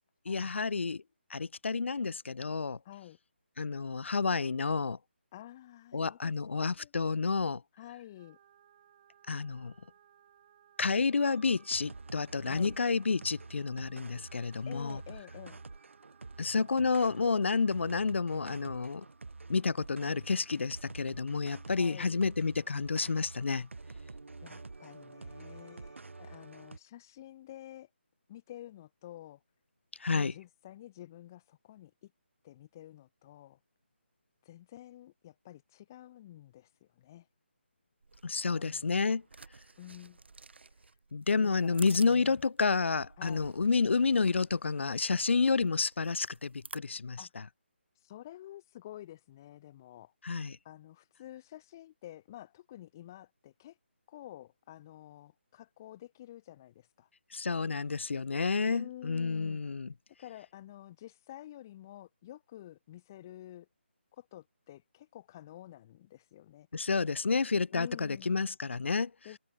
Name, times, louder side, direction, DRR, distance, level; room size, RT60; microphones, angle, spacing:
voice 1, 0.3-1.0 1.3-2.8 3.6-5.0 5.9-7.6 9.3-9.7 10.8-15.0 16.4-19.0 19.5-23.7 30.0-30.3 38.2-39.2 41.1-47.2 50.2-50.6 57.3-59.9 66.7-69.1, left 4 dB, 80° left, 0.5 m, -30 dB
voice 2, 2.8-3.2 5.3-6.9 7.8-8.4 12.5-12.8 14.6-15.6 21.6-22.2 24.4-27.9 28.3-29.4 30.1-32.1 32.4-33.6 34.4-37.3 38.5-39.0 39.8-40.2 40.7-41.0 41.4-42.4 43.2-43.5 47.2-47.3 47.9-50.1 50.6-53.8 54.1-57.1 58.7-59.7 60.2-63.7 64.1-66.7 67.7-68.3 69.2-69.4, left 13 dB, 15° left, 1.0 m, -50 dB
sound 1, 8.2-18.2, right 10 dB, 25° right, 6.1 m, -63 dB
sound 2, 11.2-26.8, right 3 dB, 90° right, 3.6 m, -48 dB
sound 3, 38.0-46.8, right 4 dB, 65° right, 7.6 m, -53 dB
hypercardioid pair, 175°, 6 cm